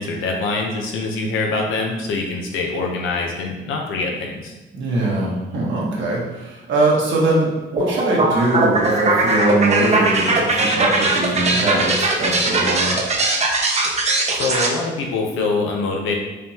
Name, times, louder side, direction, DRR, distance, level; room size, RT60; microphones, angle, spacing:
voice 1, 0.0-4.5 14.3-16.1, left 3 dB, 85° left, 1 dB, 0.9 m, -24 dB
voice 2, 4.7-13.0, right 2 dB, 70° right, -4 dB, 1.5 m, -21 dB
sound 1, 7.8-14.7, right 2 dB, 35° right, 0.8 m, -20 dB
5.0 x 3.6 x 2.9 m, 1.1 s
cardioid pair, 90°, 20 cm